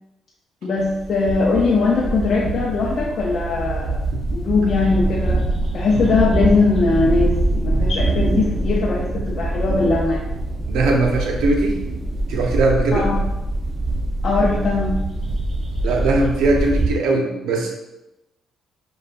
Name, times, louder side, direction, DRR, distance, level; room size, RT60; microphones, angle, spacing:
voice 1, 0.6-4.0 4.3-5.4 5.7-7.3 7.6-10.3 12.9-13.2 14.2-15.0, left 4 dB, 60° left, -3 dB, 0.5 m, -20 dB
sound 1, 0.8-16.9, right 2 dB, 45° right, 0.8 m, -24 dB
voice 2, 10.7-11.8 12.3-13.1 15.8-17.7, right 2 dB, 85° right, 1 dB, 0.6 m, -20 dB
5.1 x 2.3 x 2.5 m, 0.97 s
cardioid pair, 90°, 0 cm